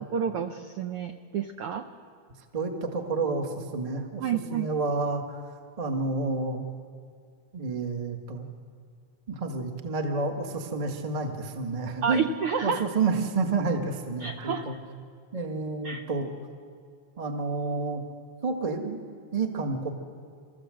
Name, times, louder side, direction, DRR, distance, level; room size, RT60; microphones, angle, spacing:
voice 1, 0.1-1.9 4.2-4.7 12.0-12.8 14.2-14.8 15.8-16.0, right 7 dB, 90° right, 6 dB, 1.2 m, -30 dB
voice 2, 2.5-4.2 4.5-5.4 5.8-6.6 7.5-8.5 9.3-12.3 12.6-14.8 15.3-16.3 17.2-18.0 18.4-19.0 19.3-19.9, right 3 dB, 35° right, 4 dB, 0.5 m, -29 dB
28.5 x 15.0 x 7.7 m, 2.2 s
omnidirectional pair, 3.8 m